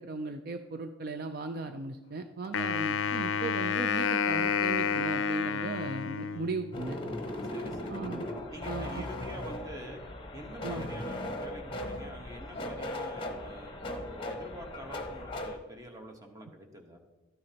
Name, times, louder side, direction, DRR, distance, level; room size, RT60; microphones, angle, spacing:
voice 1, 0.0-7.0 7.9-8.2 8.6-9.0 10.6-10.9, right 3 dB, 50° right, 7 dB, 0.4 m, -37 dB
Wind instrument woodwind instrument, 2.5-6.8, left 6 dB, 85° left, 0.4 m, -30 dB
sound 1, 6.7-15.6, left 1 dB, 25° left, 0.9 m, -38 dB
voice 2, 7.4-8.0 8.5-10.0 10.3-17.0, equal, 20° right, 3 dB, 1.1 m, -46 dB
12.5 x 9.5 x 2.9 m, 1.2 s
head